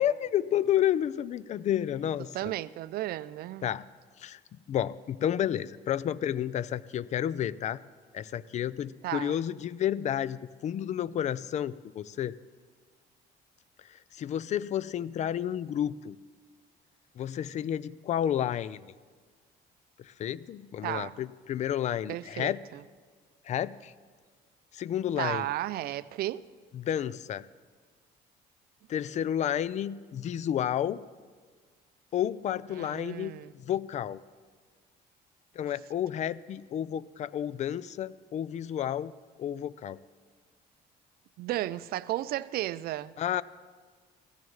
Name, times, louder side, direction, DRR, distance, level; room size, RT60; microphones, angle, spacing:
voice 1, 0.0-2.5 3.6-3.9 4.2-4.4 4.7-7.8 8.1-12.4 13.9-16.2 17.2-18.9 20.0-22.6 23.4-23.9 24.7-25.5 26.7-27.5 28.9-31.0 32.1-34.2 35.6-39.1 39.4-40.0 43.2-43.4, left 10 dB, 45° left, 0.4 m, -31 dB
voice 2, 2.3-3.7 9.0-9.4 20.8-21.1 22.1-22.8 25.2-26.5 32.7-33.5 41.4-43.1, right 14 dB, 65° right, 0.4 m, -34 dB
17.0 x 14.0 x 3.1 m
cardioid pair, 110°, 17 cm